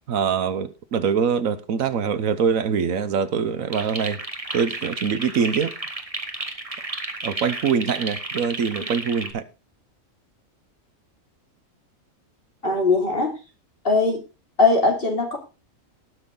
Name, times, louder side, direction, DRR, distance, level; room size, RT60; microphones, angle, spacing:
voice 1, 0.1-4.2 4.5-5.7 7.2-9.5, right 6 dB, 75° right, 1.3 m, -24 dB
sound 1, 3.7-9.3, right 2 dB, 25° right, 1.6 m, -32 dB
voice 2, 12.6-13.3 13.8-14.2 14.6-15.4, left 3 dB, 45° left, 3.3 m, -20 dB
19.0 x 6.4 x 3.8 m
omnidirectional pair, 1.4 m